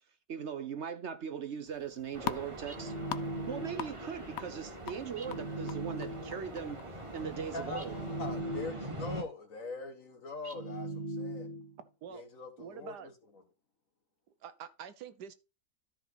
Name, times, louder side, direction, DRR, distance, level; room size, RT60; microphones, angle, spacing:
voice 1, 0.3-2.9 3.5-6.8 7.1-7.9, right 7 dB, 55° right, 0.8 m, -39 dB
sound 1, 1.7-8.4, left 10 dB, 75° left, 0.6 m, -45 dB
sound 2, 2.1-9.2, right 1 dB, 20° right, 1.4 m, -43 dB
sound 3, 2.7-4.0 5.2-6.5 7.8-9.1 10.4-11.8, right 1 dB, 35° right, 1.1 m, -39 dB
voice 2, 7.5-11.5 12.1-13.1, left 3 dB, 55° left, 1.7 m, -42 dB
voice 3, 12.6-13.1 14.4-15.3, right 8 dB, 75° right, 1.5 m, -46 dB
13.0 x 5.0 x 3.9 m
omnidirectional pair, 1.8 m